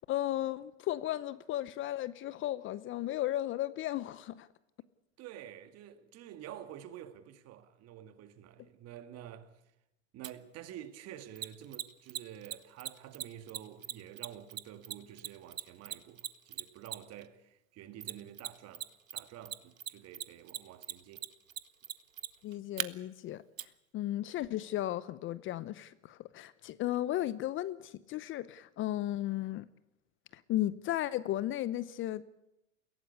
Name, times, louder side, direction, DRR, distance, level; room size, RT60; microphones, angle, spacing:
voice 1, 0.1-4.5 22.4-23.4 23.9-29.7 30.3-32.2, left 14 dB, 30° left, 0.8 m, -35 dB
voice 2, 5.2-9.6 10.1-21.2, right 11 dB, 40° right, 2.1 m, -49 dB
Mechanisms, 10.2-10.3 11.4-17.2 18.0-18.8 19.1-22.9 23.6-23.7, right 10 dB, 90° right, 1.2 m, -38 dB
22.5 x 16.5 x 8.4 m
hypercardioid pair, 110°, 39 cm